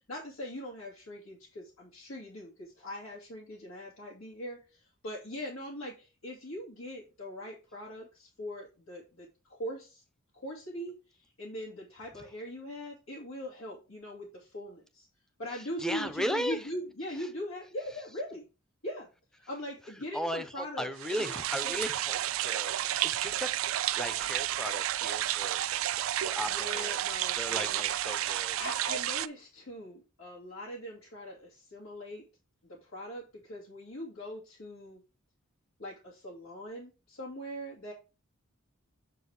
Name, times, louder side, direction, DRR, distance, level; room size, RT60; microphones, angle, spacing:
voice 1, 0.1-10.0 10.3-15.1 15.4-18.4 18.8-19.1 19.5-20.9 21.2-21.3 21.6-21.8 25.2-25.3 26.5-27.9 28.6-32.2 32.7-35.0 35.8-37.9, equal, 85° left, 2.5 m, -41 dB
voice 2, 15.8-16.7 17.2-17.3 20.1-23.5 23.9-25.6 25.9-27.0 27.4-28.6, equal, 5° left, 0.6 m, -36 dB
sound 1, 21.0-29.3, right 13 dB, 70° right, 0.4 m, -31 dB
7.4 x 4.6 x 4.8 m
head